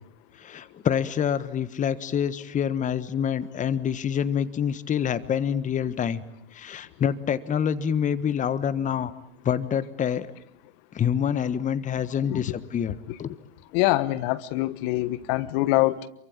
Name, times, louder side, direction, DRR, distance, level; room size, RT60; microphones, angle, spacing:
voice 1, 0.4-6.2 6.5-9.1 9.4-10.3 10.9-13.3, left 8 dB, 25° left, 15 dB, 1.4 m, -26 dB
voice 2, 13.7-16.1, left 17 dB, 50° left, 16 dB, 1.4 m, -24 dB
28.5 x 23.5 x 8.9 m, 0.73 s
hypercardioid pair, 110°, 33 cm